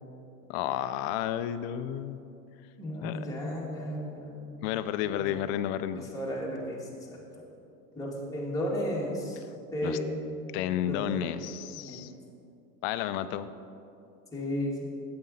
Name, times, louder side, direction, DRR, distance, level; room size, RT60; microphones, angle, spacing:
voice 1, 0.5-2.2 3.0-3.3 4.6-6.1 9.8-10.0 10.5-12.1 12.8-13.5, left 11 dB, 45° left, 13 dB, 0.4 m, -31 dB
voice 2, 2.8-4.5 5.1-5.3 5.9-7.2 8.0-9.4 9.7-10.2 10.9-11.2 11.8-12.1 14.3-14.9, equal, 5° left, -5 dB, 2.1 m, -34 dB
8.8 x 7.8 x 4.2 m, 2.6 s
hypercardioid pair, 105°, 48 cm